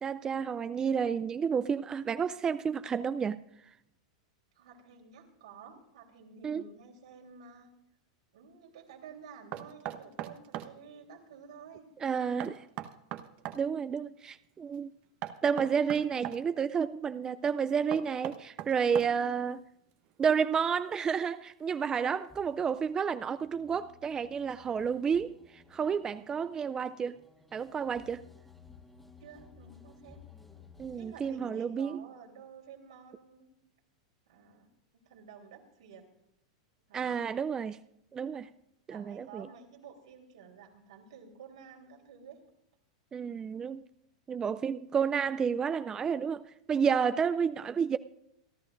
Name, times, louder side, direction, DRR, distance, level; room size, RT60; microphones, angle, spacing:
voice 1, 0.0-3.4 6.4-6.6 12.0-12.6 13.5-14.9 15.4-19.6 20.2-27.2 27.5-28.3 30.8-32.0 36.9-37.8 38.1-38.5 38.9-39.5 43.1-43.8 44.3-46.4 46.7-48.0, right 6 dB, 20° right, 0.4 m, -30 dB
voice 2, 4.6-7.7 8.3-11.9 29.2-30.2 30.9-33.5 34.3-36.1 36.9-37.2 38.9-42.4, right 6 dB, 80° right, 3.4 m, -52 dB
Knock, 9.5-10.7 12.4-13.6 15.2-16.4 17.9-19.3, right 13 dB, 45° right, 0.9 m, -39 dB
sound 1, 22.3-31.3, left 4 dB, 5° left, 1.6 m, -57 dB
27.5 x 11.5 x 2.5 m
hypercardioid pair, 115°, 3 cm